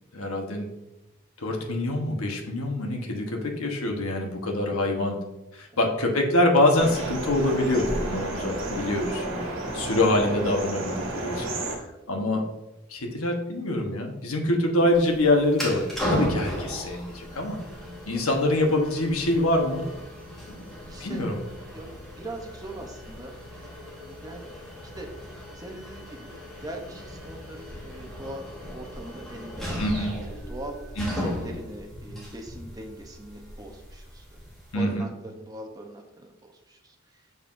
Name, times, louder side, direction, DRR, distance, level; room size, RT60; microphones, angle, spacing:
voice 1, 0.1-0.7 1.4-5.2 5.5-9.4 9.7-11.8 12.1-12.4 12.9-17.6 18.1-19.9 20.5-20.7 21.0-21.4 29.8-30.2 31.0-31.2 34.7-35.0, left 1 dB, 85° left, 2 dB, 1.2 m, -25 dB
sound 1, 6.7-11.8, right 1 dB, 60° right, 1.6 m, -31 dB
voice 2, 9.0-9.4 18.1-18.4 20.9-21.9 22.2-23.7 24.0-24.5 24.8-25.1 25.5-26.3 26.6-30.1 30.5-34.4 34.7-37.3, right 1 dB, 15° right, 2 dB, 0.7 m, -41 dB
sound 2, 14.9-34.7, equal, ahead, 1.5 m, -36 dB
6.8 x 5.5 x 2.6 m, 0.96 s
head